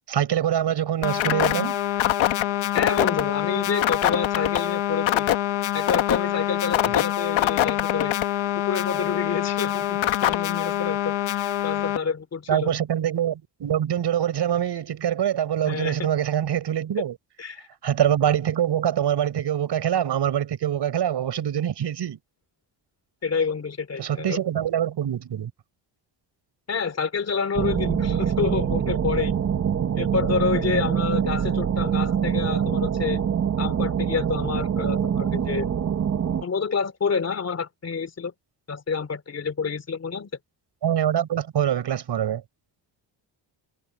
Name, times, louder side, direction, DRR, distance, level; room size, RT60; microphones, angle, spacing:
voice 1, 0.1-1.7 12.5-17.1 17.8-22.2 24.0-25.5 40.8-42.4, right 10 dB, 60° right, 5.3 m, -24 dB
sound 1, 1.0-12.0, left 12 dB, 80° left, 1.4 m, -24 dB
voice 2, 2.7-5.3 5.7-8.2 8.6-12.7 15.7-16.1 17.4-17.7 23.2-24.4 26.7-29.4 29.9-33.2 33.6-35.7 36.4-38.3 38.7-40.3, left 5 dB, 35° left, 3.1 m, -28 dB
sound 2, 27.6-36.4, right 8 dB, 35° right, 1.1 m, -24 dB
cardioid pair, 150°, 46 cm